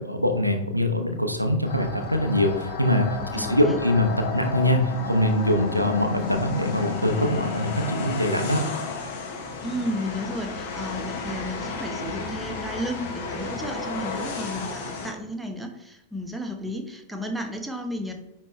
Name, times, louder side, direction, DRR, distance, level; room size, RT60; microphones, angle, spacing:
voice 1, 0.0-3.1 3.3-8.6, left 1 dB, 90° right, 5 dB, 0.8 m, -23 dB
sound 1, 1.6-15.1, left 5 dB, 50° left, 1.4 m, -32 dB
voice 2, 3.3-3.8 9.6-18.1, equal, 5° right, 4 dB, 0.9 m, -33 dB
9.5 x 3.5 x 3.1 m, 0.92 s
figure-of-eight pair, 90°, 0 cm